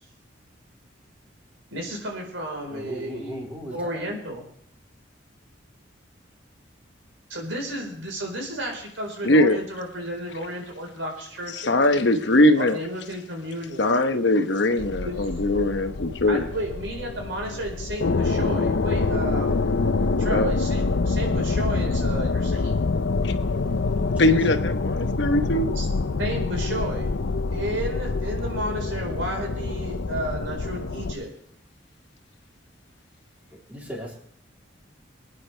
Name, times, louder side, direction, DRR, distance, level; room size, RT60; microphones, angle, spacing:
voice 1, 1.7-3.5 3.7-4.5 7.3-11.8 12.6-13.9 15.0-15.3 16.3-19.8 20.2-22.8 25.7-25.9 26.2-27.1 27.5-31.3, right 1 dB, 90° right, 1 dB, 4.5 m, -32 dB
voice 2, 2.7-4.1 23.9-24.2 33.5-34.2, equal, 10° right, -3 dB, 3.4 m, -37 dB
voice 3, 9.2-9.6 11.5-12.8 13.8-16.5 20.3-20.5 23.2-23.3 24.2-25.8, left 1 dB, 65° left, 7 dB, 1.0 m, -21 dB
sound 1, 14.8-31.1, left 3 dB, 80° left, 0.7 m, -26 dB
24.0 x 9.5 x 3.4 m, 0.67 s
head